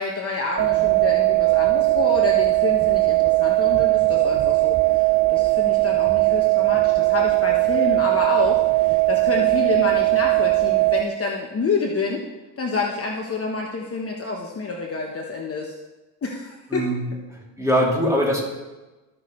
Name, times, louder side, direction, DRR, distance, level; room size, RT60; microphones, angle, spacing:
voice 1, 0.0-12.2 12.6-15.7 16.2-16.9, left 4 dB, 30° left, 0 dB, 1.2 m, -28 dB
sound 1, 0.6-11.0, right 22 dB, 35° right, 0.6 m, -19 dB
voice 2, 16.7-17.0 17.3-18.4, equal, 5° right, -3 dB, 2.9 m, -22 dB
14.5 x 6.2 x 3.2 m, 1.1 s
supercardioid pair, 85°, 46 cm